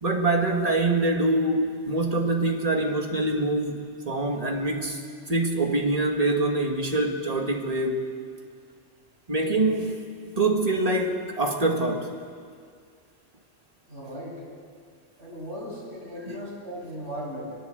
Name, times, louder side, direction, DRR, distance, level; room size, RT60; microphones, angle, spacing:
voice 1, 0.0-5.0 5.3-8.1 9.3-10.0 10.4-12.1 16.3-16.4, right 2 dB, 35° right, 2 dB, 2.2 m, -25 dB
voice 2, 13.9-14.4 15.2-17.6, equal, 80° right, -4 dB, 7.5 m, -37 dB
22.5 x 21.5 x 8.1 m, 2.1 s
omnidirectional pair, 1.1 m